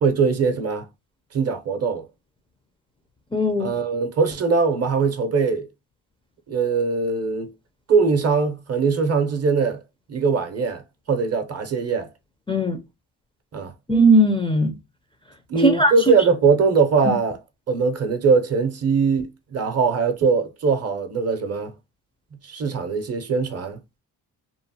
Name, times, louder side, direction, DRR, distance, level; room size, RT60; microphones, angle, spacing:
voice 1, 0.0-0.9 1.3-2.1 3.6-5.7 6.5-7.5 7.9-9.8 10.1-10.8 11.1-12.1 13.5-13.7 15.5-17.4 17.7-21.7 22.4-23.8, right 5 dB, 40° right, 0.6 m, -21 dB
voice 2, 3.3-3.7 12.5-12.8 13.9-14.7 15.6-15.9, right 1 dB, 15° left, 0.4 m, -17 dB
3.0 x 2.0 x 2.6 m
cardioid pair, 85°, 40 cm